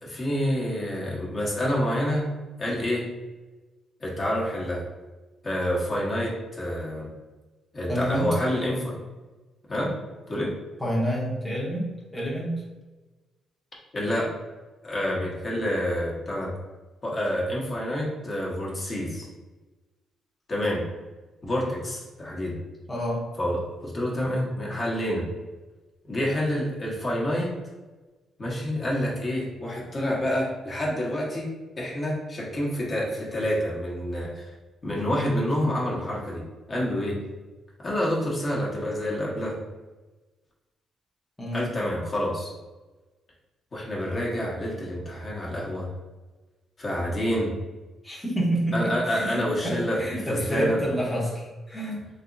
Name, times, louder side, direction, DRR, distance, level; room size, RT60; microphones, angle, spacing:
voice 1, 0.0-2.3 2.6-3.0 4.0-4.8 5.4-7.1 7.7-9.0 9.7-9.9 10.3-10.5 13.9-14.3 14.8-16.5 17.0-19.3 20.5-20.8 21.4-22.6 23.4-25.2 26.1-27.5 28.4-31.5 31.8-34.4 34.8-36.4 36.7-37.2 37.8-39.6 41.5-42.5 43.7-45.9 46.8-47.5 48.7-50.8, equal, 35° left, -4 dB, 1.0 m, -28 dB
voice 2, 7.9-8.3 10.8-11.8 12.1-12.5 14.2-14.3 22.9-23.2 41.4-41.7 48.0-52.1, equal, 5° left, -6 dB, 0.8 m, -28 dB
3.4 x 2.9 x 2.6 m, 1.2 s
cardioid pair, 90°, 0 cm